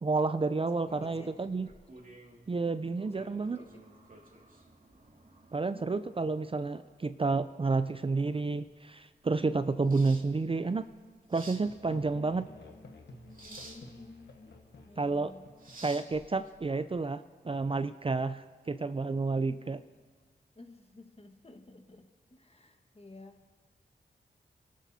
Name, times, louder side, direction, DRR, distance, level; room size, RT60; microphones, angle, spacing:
voice 1, 0.0-1.7 2.5-3.6 5.5-10.8 11.3-12.5 15.0-15.3 15.8-19.8, right 3 dB, 30° right, 11 dB, 0.5 m, -30 dB
voice 2, 0.6-1.5 2.6-3.7 5.7-6.1 11.9-12.3 13.4-14.3 14.8-15.5 19.3-19.6 20.5-23.4, left 2 dB, 35° left, 5 dB, 1.6 m, -54 dB
sound 1, 0.8-17.0, right 2 dB, 50° right, 2.3 m, -54 dB
Musical instrument, 11.6-16.4, left 2 dB, 75° left, 1.4 m, -53 dB
26.0 x 12.5 x 2.8 m, 1.4 s
cardioid pair, 45°, 18 cm